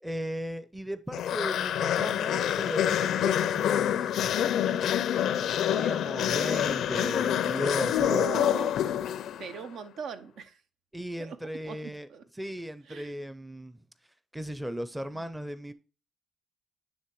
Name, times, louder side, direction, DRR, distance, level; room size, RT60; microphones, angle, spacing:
voice 1, 0.0-5.1 5.7-8.2 10.9-12.1 12.4-13.9 14.3-15.7, equal, 5° right, 0.6 m, -36 dB
sound 1, 1.1-9.6, left 10 dB, 75° left, 0.5 m, -27 dB
voice 2, 5.2-5.7 8.1-8.7 9.4-10.6 11.2-11.4 11.6-12.2 12.9-13.1 15.1-15.2, right 6 dB, 70° right, 0.8 m, -40 dB
9.5 x 3.4 x 4.7 m
cardioid pair, 90°, 0 cm